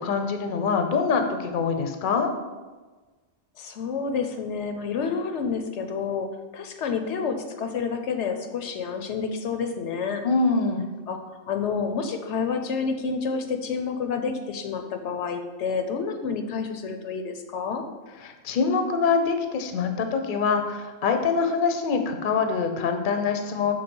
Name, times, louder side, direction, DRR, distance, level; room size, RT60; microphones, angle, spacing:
voice 1, 0.0-2.3 10.2-10.8 18.2-23.7, left 5 dB, 55° left, 6 dB, 0.7 m, -24 dB
voice 2, 3.6-6.3 6.5-10.2 11.1-17.8, left 5 dB, 85° left, 6 dB, 1.0 m, -29 dB
6.0 x 3.5 x 5.2 m, 1.3 s
omnidirectional pair, 1.2 m